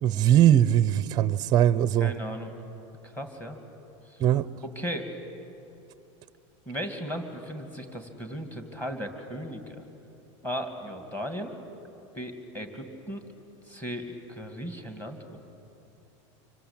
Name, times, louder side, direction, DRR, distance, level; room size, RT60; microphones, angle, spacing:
voice 1, 0.0-2.1 4.2-4.5, right 11 dB, 25° right, 16 dB, 0.6 m, -21 dB
voice 2, 2.0-2.5 3.0-3.6 4.1-4.2 4.8-5.1 6.7-9.8 10.4-11.5 12.1-13.2 13.7-15.4, equal, 10° left, 5 dB, 2.3 m, -36 dB
26.0 x 24.5 x 8.8 m, 2.8 s
supercardioid pair, 155°, 16 cm